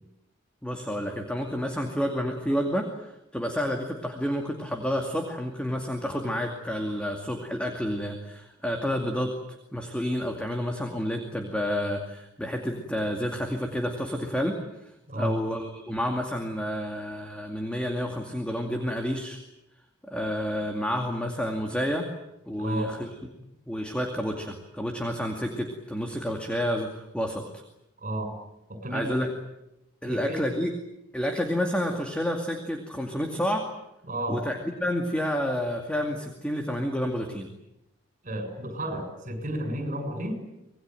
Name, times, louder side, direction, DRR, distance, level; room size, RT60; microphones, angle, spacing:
voice 1, 0.6-9.3 9.7-14.6 15.2-19.4 20.0-22.1 22.5-23.1 23.4-27.6 28.9-29.3 30.0-30.7 31.1-33.7 34.3-37.5, equal, 5° left, 3 dB, 2.4 m, -29 dB
voice 2, 22.6-22.9 28.0-28.3 28.7-29.2 30.0-30.4 34.0-34.4 38.2-40.4, right 1 dB, 40° right, 5 dB, 6.9 m, -32 dB
25.5 x 20.5 x 9.2 m, 0.89 s
head